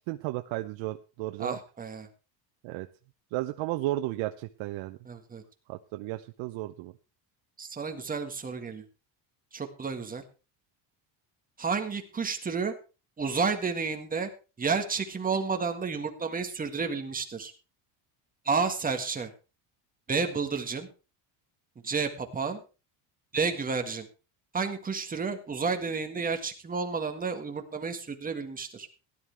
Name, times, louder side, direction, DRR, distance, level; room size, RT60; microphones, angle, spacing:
voice 1, 0.1-1.6 2.6-2.9 3.3-5.0 5.7-6.9, right 16 dB, 75° right, 7 dB, 0.9 m, -33 dB
voice 2, 1.4-2.1 5.1-5.4 7.6-8.8 9.5-10.2 11.6-12.7 13.2-14.3 14.6-17.5 18.5-19.3 20.1-20.9 21.8-22.6 23.3-24.1 24.5-28.9, right 5 dB, 20° right, 5 dB, 1.7 m, -31 dB
16.5 x 11.0 x 3.4 m, 0.32 s
cardioid pair, 155°, 47 cm